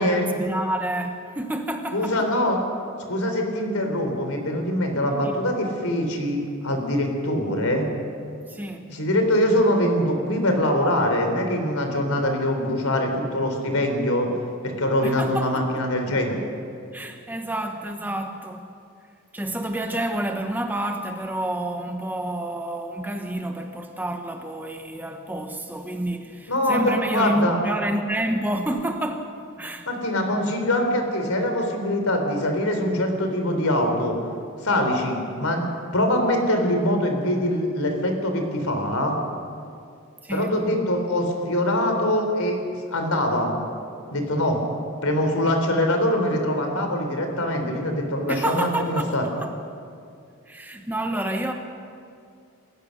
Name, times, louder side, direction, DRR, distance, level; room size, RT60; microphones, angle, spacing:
voice 1, 0.0-2.2 5.1-5.3 8.5-8.9 15.0-15.8 16.9-18.7 19.3-29.9 40.2-40.6 48.3-49.5 50.5-51.5, right 1 dB, 10° right, 4 dB, 1.0 m, -29 dB
voice 2, 1.9-2.6 3.1-7.9 8.9-14.3 14.6-16.4 26.5-27.6 29.9-34.2 34.6-35.7 35.9-39.1 40.3-42.6 42.9-43.5 44.1-44.6 45.0-49.2, left 1 dB, 80° left, 4 dB, 3.7 m, -23 dB
27.5 x 15.0 x 6.6 m, 2.4 s
head